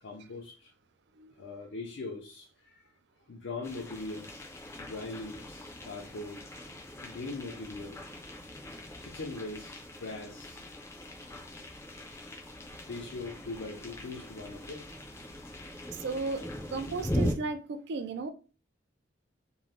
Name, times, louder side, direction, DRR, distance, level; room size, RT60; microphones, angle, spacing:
voice 1, 0.0-0.7 1.4-2.8 3.3-4.5 4.8-6.4 7.0-8.0 9.0-10.6 12.1-12.2 12.9-14.9 15.8-16.0, left 3 dB, 70° left, 0.5 m, -41 dB
voice 2, 1.2-1.5 15.9-16.5 16.7-18.3, right 3 dB, 65° right, 0.3 m, -35 dB
sound 1, 3.6-17.3, equal, 15° left, 0.4 m, -40 dB
2.6 x 2.0 x 3.2 m
head